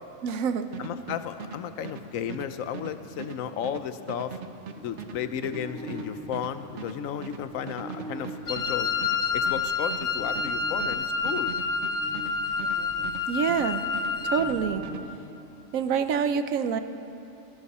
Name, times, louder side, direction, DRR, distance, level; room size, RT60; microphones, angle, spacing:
voice 1, 0.2-0.7 13.3-13.8 14.2-14.8 15.7-16.8, right 7 dB, 85° right, 11 dB, 1.1 m, -26 dB
sound 1, 0.7-13.7 13.9-15.0, right 6 dB, 60° right, 1.1 m, -40 dB
voice 2, 0.8-4.4 4.8-8.9 9.3-11.6, left 9 dB, 75° left, 11 dB, 1.1 m, -34 dB
sound 2, 4.8-9.5 10.2-15.1, right 1 dB, 5° left, 2.0 m, -43 dB
Wind instrument woodwind instrument, 8.5-14.5, left 5 dB, 45° left, 0.9 m, -28 dB
30.0 x 11.5 x 4.2 m, 2.8 s
omnidirectional pair, 1.4 m